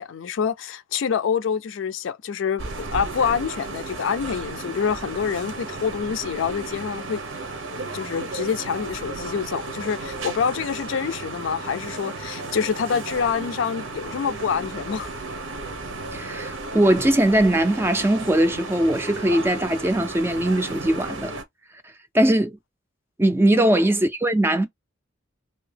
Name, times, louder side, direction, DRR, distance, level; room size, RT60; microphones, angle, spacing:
voice 1, 0.0-7.2 7.9-15.1 23.5-23.7, left 6 dB, 80° left, 0.4 m, -26 dB
sound 1, 2.6-21.4, right 3 dB, 90° right, 0.9 m, -34 dB
voice 2, 16.1-21.3 21.8-22.6 23.2-24.7, right 1 dB, 10° right, 0.4 m, -20 dB
2.8 x 2.7 x 3.3 m
head